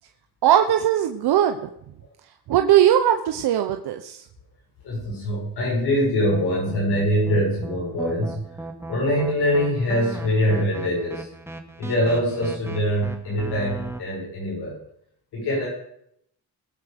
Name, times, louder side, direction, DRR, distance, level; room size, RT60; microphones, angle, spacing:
voice 1, 0.4-1.7 2.5-4.2, right 11 dB, 85° right, 6 dB, 0.9 m, -19 dB
voice 2, 4.8-8.6 8.9-11.3 11.8-14.8 15.3-15.7, equal, 80° left, -5 dB, 6.6 m, -23 dB
sound 1, 6.3-14.0, right 1 dB, 5° right, 2.0 m, -37 dB
21.0 x 7.5 x 5.1 m, 0.73 s
cardioid pair, 70°, 39 cm